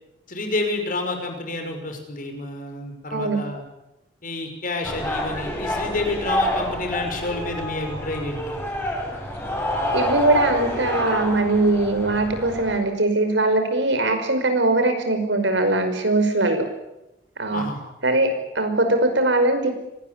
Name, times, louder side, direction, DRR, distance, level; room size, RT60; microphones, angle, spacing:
voice 1, 0.3-3.6 4.2-8.6 17.5-17.8, left 2 dB, 50° left, 5 dB, 5.9 m, -29 dB
voice 2, 3.1-3.4 9.9-16.7 17.4-17.7 18.0-19.7, right 2 dB, 75° right, 7 dB, 5.5 m, -21 dB
sound 1, 4.8-12.8, left 1 dB, 15° left, 7.4 m, -28 dB
24.5 x 19.5 x 9.7 m, 0.90 s
head